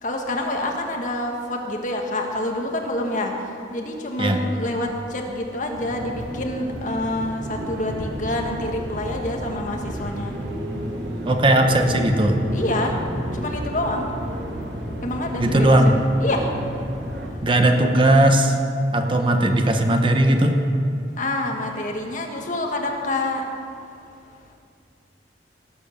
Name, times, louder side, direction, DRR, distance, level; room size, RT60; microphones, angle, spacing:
voice 1, 0.0-3.3 3.7-10.3 12.5-12.9 13.3-14.1 15.0-16.5 21.2-23.4, left 1 dB, 45° left, 2 dB, 1.6 m, -27 dB
sound 1, 5.7-17.3, equal, 80° right, 1.9 m, -31 dB
voice 2, 11.3-12.4 15.4-15.9 17.4-18.6 18.9-20.6, right 1 dB, 30° right, 4 dB, 1.0 m, -17 dB
18.0 x 8.1 x 6.6 m, 2.4 s
head